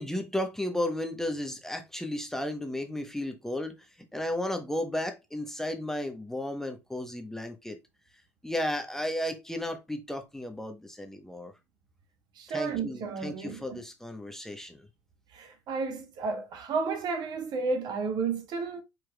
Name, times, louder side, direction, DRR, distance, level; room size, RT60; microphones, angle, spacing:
voice 1, 0.0-3.7 4.1-7.8 8.4-11.5 12.5-14.9, left 1 dB, 5° left, 1.0 m, -34 dB
voice 2, 12.4-13.8 15.3-18.8, right 4 dB, 50° right, 1.2 m, -32 dB
5.0 x 4.5 x 2.3 m
hypercardioid pair, 75°, 9 cm